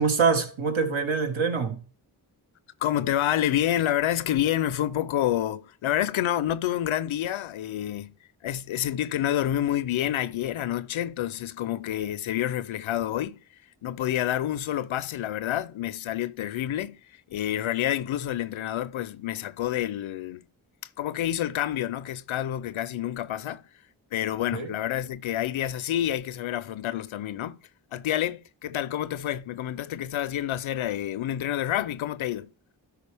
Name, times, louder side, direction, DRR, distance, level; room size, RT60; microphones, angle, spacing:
voice 1, 0.0-1.8 24.5-24.7, right 5 dB, 75° right, 1.7 m, -24 dB
voice 2, 2.8-8.1 8.4-13.4 13.8-17.0 17.3-20.4 21.0-23.6 24.1-27.6 27.9-32.5, left 12 dB, 85° left, 0.6 m, -28 dB
12.5 x 4.8 x 3.4 m
cardioid pair, 40°, 47 cm